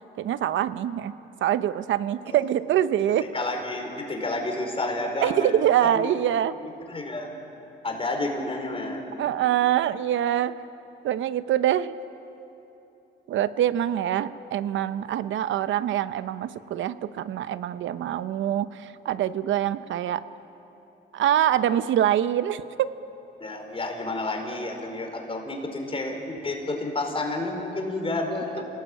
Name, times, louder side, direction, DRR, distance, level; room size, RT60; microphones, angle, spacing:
voice 1, 0.2-1.1 1.4-3.3 5.2-6.5 9.2-10.5 11.0-12.0 13.3-20.2 21.1-22.9 28.6-28.7, right 11 dB, 75° right, 13 dB, 0.9 m, -24 dB
voice 2, 3.2-5.5 5.9-6.1 6.6-7.3 7.8-9.0 23.4-28.6, left 2 dB, 30° left, 2 dB, 5.0 m, -30 dB
27.5 x 19.0 x 8.8 m, 3.0 s
cardioid pair, 90°, 20 cm